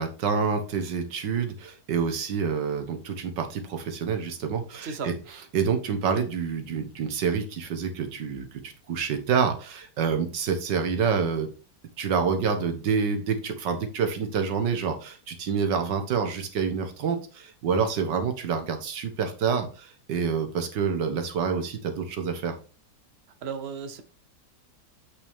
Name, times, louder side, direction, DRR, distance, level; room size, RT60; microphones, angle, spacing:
voice 1, 0.0-5.1 5.5-11.5 12.0-22.6, right 6 dB, 80° right, 1.9 m, -27 dB
voice 2, 4.8-5.1 23.4-24.0, right 5 dB, 45° right, 1.0 m, -34 dB
8.2 x 5.9 x 3.6 m
omnidirectional pair, 1.8 m